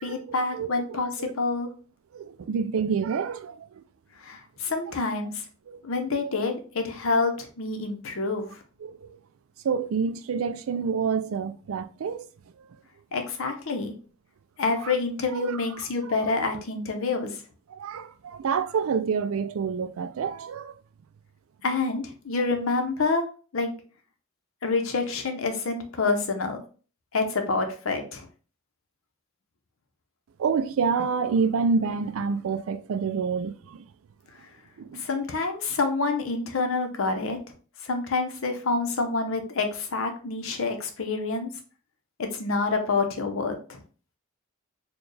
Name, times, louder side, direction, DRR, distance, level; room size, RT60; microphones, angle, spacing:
voice 1, 0.0-1.1 1.4-1.7 4.2-5.3 5.8-8.5 13.1-13.9 14.6-17.3 21.6-23.2 23.5-23.7 24.6-26.6 27.1-28.3 34.9-37.4 37.8-41.5 42.2-43.8, left 3 dB, 70° left, 0.7 m, -27 dB
voice 2, 0.5-1.3 2.1-3.8 5.7-5.8 8.8-9.2 9.6-12.3 12.6-12.7 14.8-14.9 15.3-15.6 17.7-20.8 30.4-33.8 34.8-35.0, right 5 dB, 70° right, 0.4 m, -28 dB
4.3 x 2.3 x 3.2 m
head